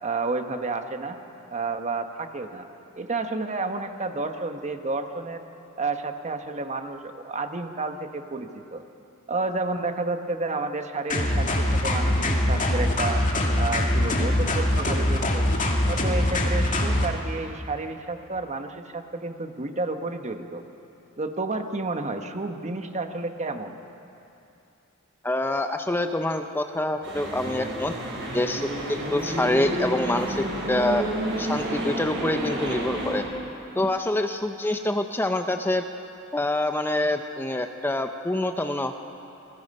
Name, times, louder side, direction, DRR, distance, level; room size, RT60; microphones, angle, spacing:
voice 1, 0.0-1.2 1.5-2.7 2.9-5.4 5.8-8.8 9.3-13.2 13.6-15.5 15.8-20.6 21.2-23.8, right 3 dB, 35° right, 6 dB, 1.2 m, -31 dB
sound 1, 11.1-17.1, left 1 dB, 40° left, 2.2 m, -23 dB
voice 2, 25.2-27.9 28.3-31.1 31.4-33.3 33.8-35.8 36.3-38.9, left 1 dB, 10° left, 6 dB, 0.6 m, -26 dB
sound 2, 27.0-33.2, right 1 dB, 60° right, 7.3 m, -30 dB
28.5 x 20.0 x 5.5 m, 2.8 s
head